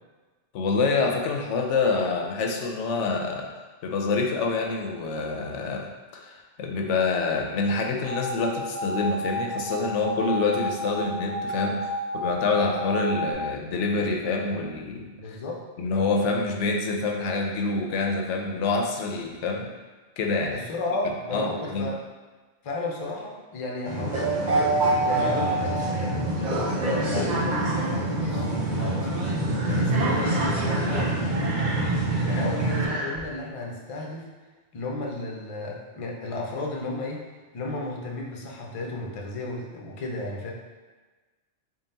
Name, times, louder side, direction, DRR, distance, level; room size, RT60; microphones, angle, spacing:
voice 1, 0.5-3.5 3.8-15.4 15.8-19.7 20.2-20.6 21.3-21.5 21.7-21.9, left 3 dB, 85° left, 1 dB, 0.9 m, -26 dB
sound 1, 8.1-13.3, equal, 75° right, 1.1 m, -31 dB
voice 2, 15.2-15.6 20.5-22.0 22.6-24.6 25.0-29.2 29.6-31.8 32.2-34.3 34.7-37.2 37.5-40.5, left 2 dB, 45° left, -1 dB, 0.4 m, -33 dB
sound 2, 23.9-32.9, right 2 dB, 45° right, 0.8 m, -25 dB
Breathing, 29.5-33.2, right 1 dB, 10° right, 1.3 m, -36 dB
3.7 x 2.2 x 4.0 m, 1.3 s
omnidirectional pair, 1.2 m